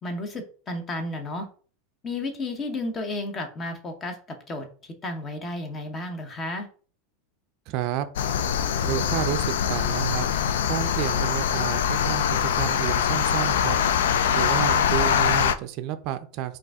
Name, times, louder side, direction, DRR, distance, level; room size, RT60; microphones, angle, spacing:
voice 1, 0.0-1.5 2.0-4.7 5.0-6.7, left 2 dB, 25° left, 6 dB, 0.9 m, -32 dB
voice 2, 7.7-8.1 8.8-10.3 10.7-13.8 14.3-16.6, right 11 dB, 55° right, 11 dB, 0.4 m, -30 dB
sound 1, 8.2-15.6, left 8 dB, 85° left, 0.3 m, -23 dB
4.7 x 2.6 x 3.5 m, 0.42 s
supercardioid pair, 130°, 0 cm